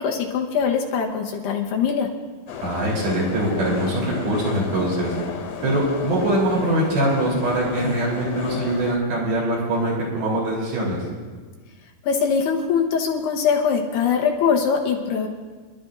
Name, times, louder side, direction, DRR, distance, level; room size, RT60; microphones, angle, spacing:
voice 1, 0.0-2.1 12.0-15.3, left 6 dB, 75° left, 1 dB, 2.9 m, -22 dB
sound 1, 2.5-9.0, left 6 dB, 55° left, 2.7 m, -33 dB
voice 2, 2.6-5.1 5.6-11.0, right 1 dB, 55° right, -5 dB, 5.4 m, -23 dB
28.0 x 12.0 x 2.6 m, 1.4 s
omnidirectional pair, 5.1 m